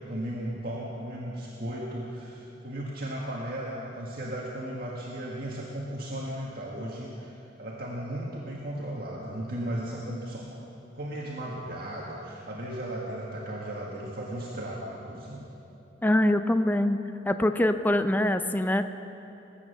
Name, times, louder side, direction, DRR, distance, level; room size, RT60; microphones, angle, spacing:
voice 1, 0.1-10.6 10.9-15.4, right 1 dB, 55° right, -4 dB, 1.8 m, -36 dB
voice 2, 16.0-17.0 17.3-18.9, left 1 dB, 10° left, 9 dB, 0.5 m, -24 dB
21.0 x 9.3 x 6.7 m, 2.9 s
head